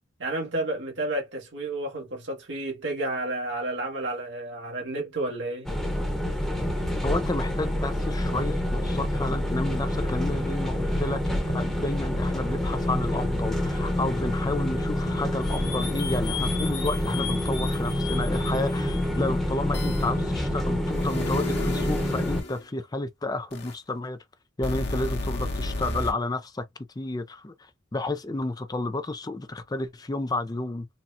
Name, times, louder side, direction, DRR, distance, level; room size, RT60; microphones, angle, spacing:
voice 1, 0.2-5.7, right 2 dB, 65° right, 1.7 m, -31 dB
sound 1, 5.7-22.4, left 1 dB, ahead, 0.9 m, -27 dB
voice 2, 7.0-24.2 24.6-26.6 27.0-27.5 27.9-30.9, left 2 dB, 20° left, 0.4 m, -31 dB
sound 2, 15.4-19.1 19.7-20.1 20.9-22.6 23.5-23.7 24.6-26.1, left 3 dB, 55° left, 1.0 m, -34 dB
4.1 x 2.3 x 2.6 m
head